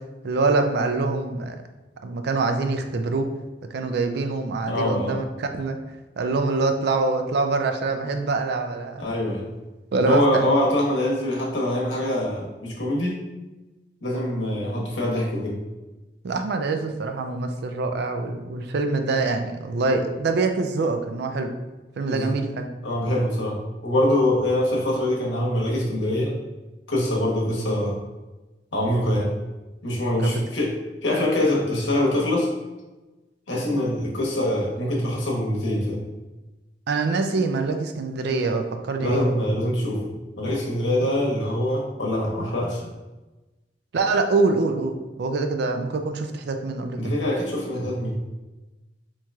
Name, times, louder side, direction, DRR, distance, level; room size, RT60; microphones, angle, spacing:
voice 1, 0.2-1.6 2.0-3.3 3.7-5.8 6.2-9.1 9.9-10.5 16.2-21.5 22.0-22.7 30.2-30.3 36.9-39.2 43.9-47.1, right 3 dB, 65° right, 6 dB, 0.4 m, -25 dB
voice 2, 4.7-5.2 9.0-9.5 10.1-13.2 14.0-15.6 22.1-22.3 22.8-26.3 26.9-28.0 28.7-29.3 29.8-30.7 31.0-32.5 33.5-36.0 39.0-40.1 40.4-42.9 47.0-48.2, left 1 dB, 90° left, -3 dB, 1.0 m, -24 dB
4.4 x 2.9 x 2.3 m, 1.1 s
head